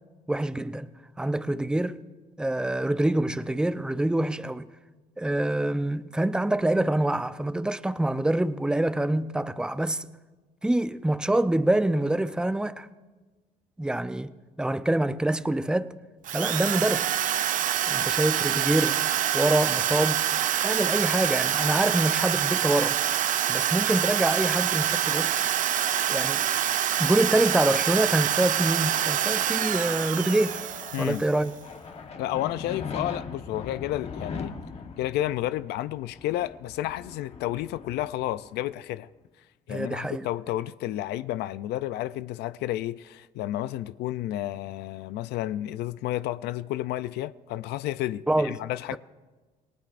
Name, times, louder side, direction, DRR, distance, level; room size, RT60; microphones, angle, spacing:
voice 1, 0.3-0.9 1.2-2.0 2.4-4.7 5.2-10.1 10.6-12.9 13.8-14.3 14.6-15.9 16.3-17.1 17.9-19.0 19.3-20.3 20.6-23.0 23.5-25.3 26.1-26.5 27.0-30.6 31.0-31.6 39.7-40.3 48.3-48.6, right 1 dB, 5° right, 0.6 m, -25 dB
Drill, 16.2-31.4, right 11 dB, 50° right, 0.5 m, -26 dB
sound 1, 28.0-39.0, left 5 dB, 40° left, 1.3 m, -41 dB
voice 2, 30.9-31.2 32.2-34.5 35.0-39.1 39.7-49.0, left 14 dB, 80° left, 0.4 m, -31 dB
27.5 x 19.5 x 2.6 m
cardioid pair, 110°, 17 cm